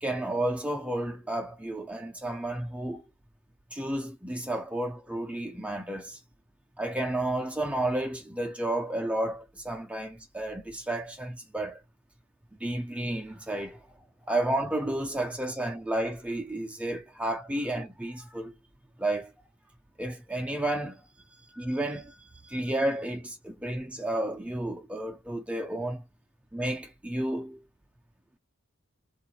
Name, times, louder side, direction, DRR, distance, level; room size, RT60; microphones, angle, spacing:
voice 1, 0.0-3.0 3.7-6.2 6.8-11.8 12.6-13.8 14.3-18.5 19.0-19.3 20.0-21.0 21.5-22.2 22.4-26.0 26.5-27.6, right 1 dB, 5° right, 0.4 m, -31 dB
3.7 x 2.4 x 2.9 m
head